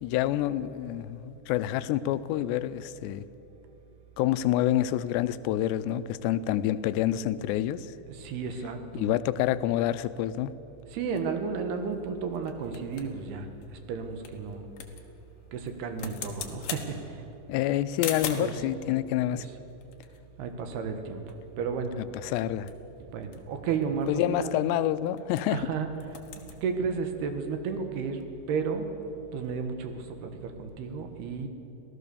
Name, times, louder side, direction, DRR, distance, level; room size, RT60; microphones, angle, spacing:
voice 1, 0.0-3.2 4.2-7.9 8.9-10.5 17.5-19.5 22.2-22.7 24.1-25.6, left 13 dB, 90° left, 2.8 m, -27 dB
voice 2, 8.1-9.2 10.9-13.5 13.9-14.6 15.5-17.0 18.4-18.5 19.3-19.5 20.4-21.2 21.6-21.9 23.1-24.5 25.5-25.9 26.6-28.2 28.5-28.9 29.3-31.5, right 5 dB, 70° right, 3.3 m, -32 dB
sound 1, 11.2-18.6 19.4-21.0 21.3-21.4 21.7-22.0 22.4-25.7 25.9-26.6, left 8 dB, 65° left, 3.1 m, -42 dB
25.5 x 17.0 x 6.9 m
omnidirectional pair, 4.9 m